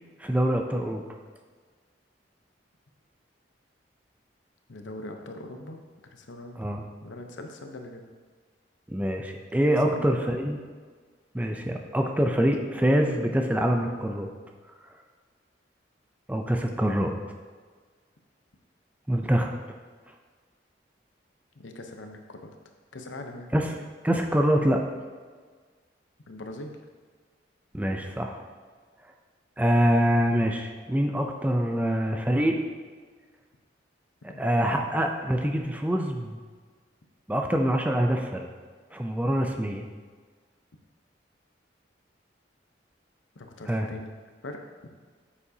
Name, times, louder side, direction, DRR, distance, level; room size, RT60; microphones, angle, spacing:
voice 1, 0.2-1.0 6.6-6.8 8.9-10.6 11.3-14.3 16.3-17.1 19.1-19.5 23.5-23.7 24.0-24.8 27.7-28.4 29.6-32.6 34.4-36.4 37.3-38.5 38.9-39.9 43.7-43.9, equal, 10° right, 3 dB, 0.5 m, -25 dB
voice 2, 4.7-6.6 7.0-8.0 9.8-10.5 21.5-22.5 22.9-23.5 26.3-26.8 34.3-34.4 43.3-44.1 44.4-44.9, left 1 dB, 90° left, 4 dB, 0.8 m, -41 dB
8.6 x 7.1 x 2.8 m, 1.5 s
head